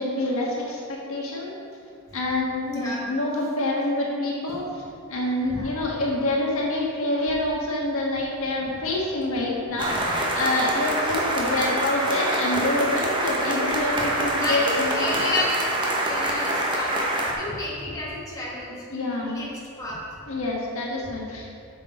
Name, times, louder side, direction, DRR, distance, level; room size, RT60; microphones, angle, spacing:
voice 1, 0.0-1.5 2.1-4.8 5.1-15.3 18.9-19.4 20.3-21.5, left 1 dB, 70° left, -3 dB, 1.5 m, -27 dB
voice 2, 2.6-3.0 5.4-5.7 9.8-10.0 14.4-17.0 17.4-19.5 19.8-20.0, left 2 dB, 15° left, -6 dB, 1.5 m, -31 dB
sound 1, 9.8-17.3, right 1 dB, 20° right, 1.0 m, -25 dB
7.9 x 6.5 x 4.3 m, 2.3 s
head